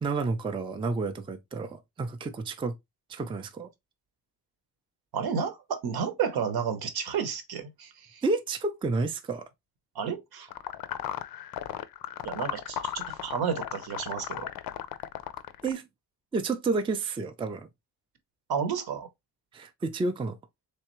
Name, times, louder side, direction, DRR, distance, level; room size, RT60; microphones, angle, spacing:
voice 1, 0.0-2.7 3.1-3.7 8.2-9.5 15.6-15.9 16.3-17.7 19.5-20.4, right 3 dB, 15° right, 0.3 m, -30 dB
voice 2, 5.1-8.2 9.9-10.5 12.2-14.5 18.5-19.1, right 7 dB, 75° right, 0.9 m, -31 dB
sound 1, 10.5-15.7, left 11 dB, 65° left, 0.5 m, -36 dB
3.4 x 3.2 x 3.0 m
wide cardioid pair, 135°, 38 cm